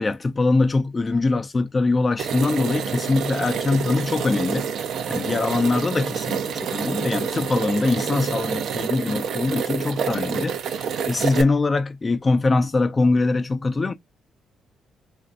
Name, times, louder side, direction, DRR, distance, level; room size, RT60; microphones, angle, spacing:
voice 1, 0.0-4.6 5.1-13.9, left 3 dB, 30° left, 0.6 m, -22 dB
sound 1, 2.2-11.4, right 7 dB, 70° right, 0.5 m, -28 dB
3.1 x 2.6 x 2.5 m
cardioid pair, 90°, 0 cm